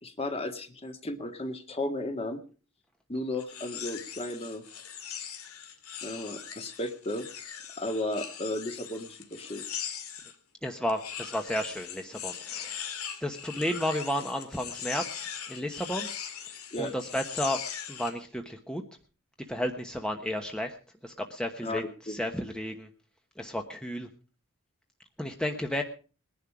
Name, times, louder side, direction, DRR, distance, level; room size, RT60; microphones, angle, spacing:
voice 1, 0.0-2.4 3.1-4.6 6.0-7.3 7.8-9.6 16.7-16.9 21.6-21.8 22.1-22.2, left 1 dB, 25° left, 6 dB, 1.8 m, -34 dB
sound 1, 3.4-10.3 10.9-18.2, left 8 dB, 80° left, 2.3 m, -40 dB
voice 2, 10.6-12.8 13.2-16.1 16.8-17.6 17.9-18.8 19.5-20.8 21.0-22.9 23.4-24.1 25.2-25.8, equal, 5° left, 4 dB, 1.1 m, -32 dB
20.5 x 11.0 x 4.9 m, 0.38 s
head